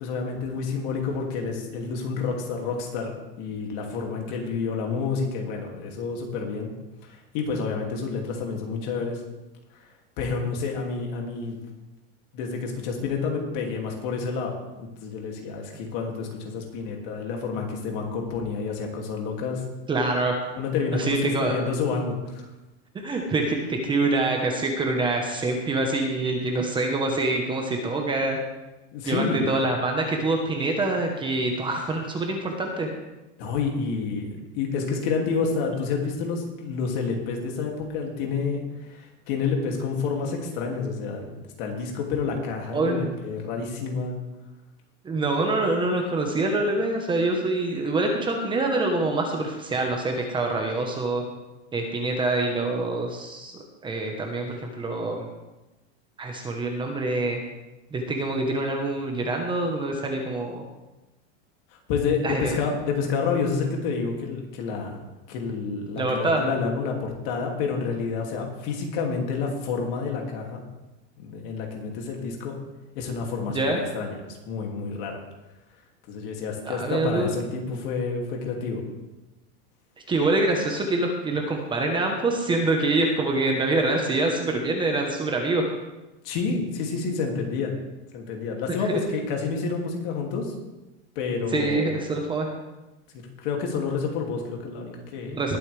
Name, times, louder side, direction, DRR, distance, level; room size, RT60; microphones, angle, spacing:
voice 1, 0.0-6.7 7.0-9.2 10.2-11.6 12.3-19.6 20.5-22.4 28.9-29.5 33.4-41.3 41.6-44.2 61.9-64.9 65.3-70.6 71.2-72.6 72.9-73.6 73.9-75.2 76.1-78.8 86.2-87.8 88.1-90.5 91.1-92.0 93.4-95.4, left 5 dB, 55° left, 1 dB, 2.8 m, -29 dB
voice 2, 19.9-20.3 20.9-21.6 22.9-28.4 29.0-32.9 42.7-43.1 45.0-51.2 51.7-55.3 56.2-57.4 57.9-60.6 62.2-62.6 66.0-66.4 73.5-73.8 76.6-77.3 80.1-85.6 91.5-92.5 95.3-95.6, right 2 dB, 15° right, 2 dB, 1.2 m, -25 dB
20.0 x 8.3 x 3.5 m, 1.0 s
supercardioid pair, 160°, 34 cm